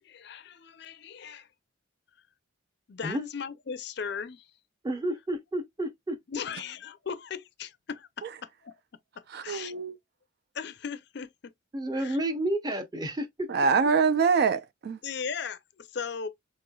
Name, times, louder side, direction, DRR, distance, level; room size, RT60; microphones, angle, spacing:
voice 1, 0.0-1.5 2.9-4.5 6.3-8.8 9.4-9.8 10.5-11.5 12.0-12.2 15.0-16.3, left 6 dB, 55° left, 0.5 m, -37 dB
voice 2, 4.8-6.2 11.7-13.3, right 1 dB, 20° right, 0.6 m, -30 dB
voice 3, 9.3-9.9 13.5-15.0, right 5 dB, 50° right, 0.3 m, -24 dB
4.3 x 3.1 x 2.3 m
head